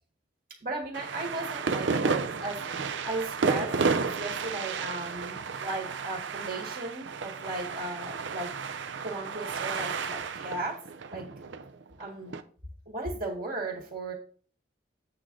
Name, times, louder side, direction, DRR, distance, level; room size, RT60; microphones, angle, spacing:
voice 1, 0.6-8.5 9.0-10.8 11.1-11.3 12.0-12.4 12.9-14.1, right 2 dB, 50° right, 0 dB, 1.9 m, -36 dB
sound 1, 0.9-12.4, right 5 dB, 80° right, 0.6 m, -32 dB
8.4 x 3.8 x 6.2 m, 0.43 s
head